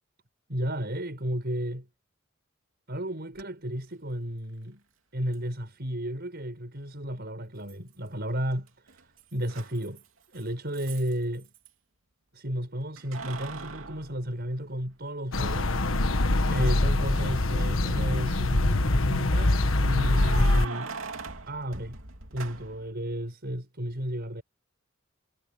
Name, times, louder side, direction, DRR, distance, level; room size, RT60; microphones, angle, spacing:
voice 1, 0.5-1.9 2.9-4.8 5.1-11.5 12.3-15.8 16.5-20.9 21.5-22.0 22.3-24.4, equal, 55° right, 6.0 m, -33 dB
Keys jangling, 3.3-3.4 5.3-5.4 7.7-8.2 8.5-11.7 13.0-15.1 15.6-15.7 17.5-18.0 20.0-22.9, right 4 dB, 90° right, 3.1 m, -42 dB
sound 1, 15.3-20.7, left 2 dB, 90° left, 1.4 m, -24 dB
head